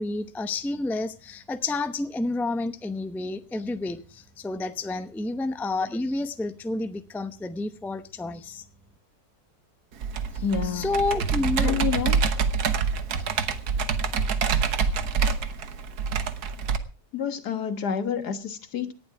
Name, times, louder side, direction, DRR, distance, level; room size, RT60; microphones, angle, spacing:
voice 1, 0.0-8.6 10.3-11.8 12.7-12.8, left 2 dB, ahead, 11 dB, 0.5 m, -30 dB
Computer keyboard, 10.0-16.8, right 5 dB, 75° right, 1.7 m, -26 dB
voice 2, 10.4-10.9 11.6-12.2 17.1-18.9, left 7 dB, 80° left, 10 dB, 2.0 m, -28 dB
18.0 x 11.5 x 4.8 m, 0.34 s
omnidirectional pair, 1.7 m